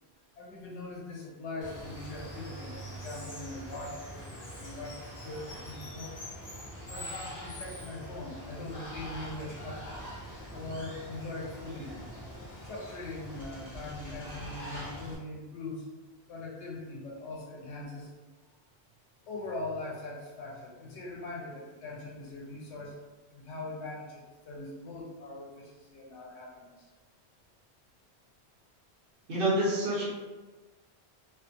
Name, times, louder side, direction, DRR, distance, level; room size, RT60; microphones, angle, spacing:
voice 1, 0.4-6.2 6.8-10.0 10.5-11.9 12.6-15.9 16.3-18.1 19.3-23.0 23.3-26.9, left 2 dB, 90° left, -3 dB, 1.0 m, -41 dB
Water, 1.6-15.2, equal, 30° left, 0.3 m, -43 dB
voice 2, 29.3-30.1, right 1 dB, 60° right, -7 dB, 0.8 m, -27 dB
2.4 x 2.3 x 2.5 m, 1.3 s
omnidirectional pair, 1.1 m